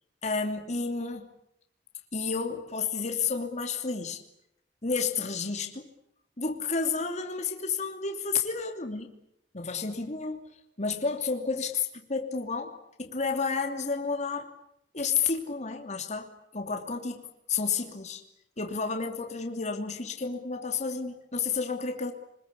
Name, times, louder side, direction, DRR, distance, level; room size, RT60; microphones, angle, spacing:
voice 1, 0.2-1.3 2.1-4.2 4.8-5.9 6.4-9.1 9.5-10.5 10.8-14.5 14.9-17.2 17.5-18.2 18.6-22.1, left 5 dB, 40° left, 4 dB, 2.9 m, -31 dB
30.0 x 21.5 x 8.4 m, 0.78 s
head